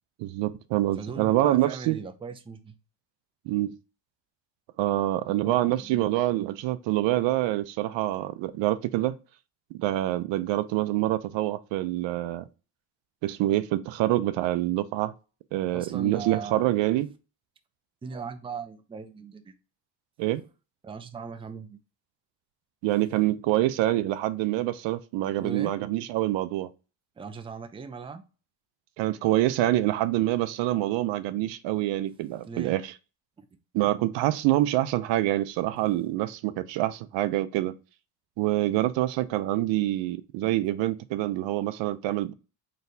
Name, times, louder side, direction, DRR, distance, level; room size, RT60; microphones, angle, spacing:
voice 1, 0.2-2.0 3.5-3.7 4.8-9.2 9.7-12.5 13.2-15.1 15.5-17.1 20.2-20.4 22.8-26.7 29.0-32.9 33.7-37.7 38.4-42.3, right 15 dB, 80° right, 0.5 m, -26 dB
voice 2, 1.0-2.7 5.3-6.1 15.7-16.6 18.0-19.5 20.8-21.8 25.4-25.7 27.2-28.2 32.5-32.7 33.4-33.6, right 5 dB, 15° right, 0.4 m, -39 dB
4.0 x 3.2 x 2.6 m
cardioid pair, 115°, 44 cm